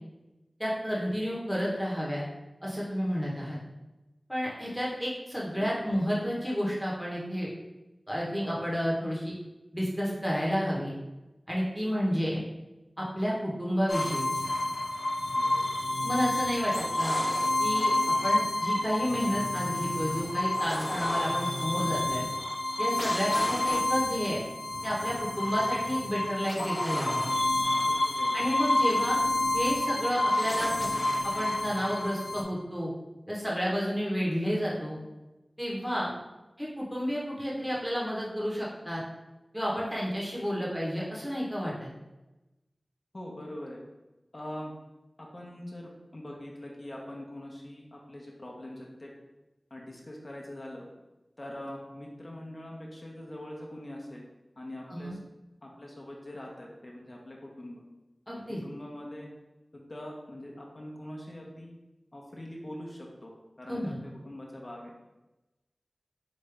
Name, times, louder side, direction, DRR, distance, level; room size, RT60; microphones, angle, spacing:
voice 1, 0.6-2.2 2.6-3.6 4.3-7.5 8.1-9.3 9.7-10.9 11.5-12.4 13.0-14.5 16.0-16.7 17.0-17.2 17.6-17.9 18.2-22.3 22.8-24.4 24.8-27.3 28.3-29.2 29.5-31.0 31.3-32.9 33.3-35.0 35.6-36.1 36.6-39.0 39.5-41.9 54.9-55.2 58.3-58.6 63.7-64.0, equal, 5° right, -5 dB, 1.1 m, -31 dB
sound 1, 13.9-32.4, left 1 dB, 75° left, 1.0 m, -29 dB
voice 2, 15.3-15.8 20.9-21.0 27.8-28.4 43.1-43.8 44.3-44.7 45.2-49.1 49.7-50.9 51.4-54.2 54.6-55.2 55.6-57.8 58.3-59.3 59.7-61.7 62.1-63.3 63.6-64.9, left 1 dB, 45° left, -2 dB, 0.9 m, -43 dB
5.1 x 2.6 x 3.4 m, 1.0 s
wide cardioid pair, 55°, 0 cm